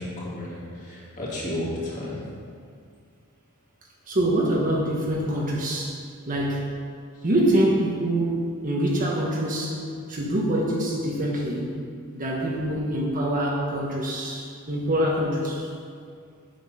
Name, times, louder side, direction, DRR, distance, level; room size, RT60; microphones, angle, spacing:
voice 1, 0.0-2.2, left 1 dB, 35° left, -7 dB, 2.6 m, -32 dB
voice 2, 4.1-6.0 6.3-6.7 7.2-9.8 10.1-11.8 12.1-15.7, right 1 dB, 35° right, -3 dB, 1.2 m, -25 dB
7.7 x 7.1 x 5.6 m, 2.3 s
head